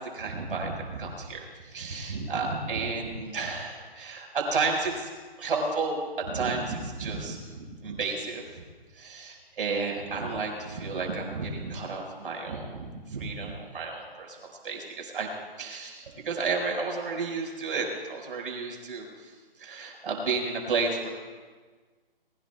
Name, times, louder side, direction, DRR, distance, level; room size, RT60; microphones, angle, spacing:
voice 1, 0.1-1.4 1.6-5.1 5.4-8.4 9.0-14.4 14.6-15.3 15.6-19.1 19.6-21.1, right 4 dB, 65° right, 1 dB, 5.5 m, -32 dB
24.5 x 23.0 x 2.4 m, 1.4 s
hypercardioid pair, 160°, 30 cm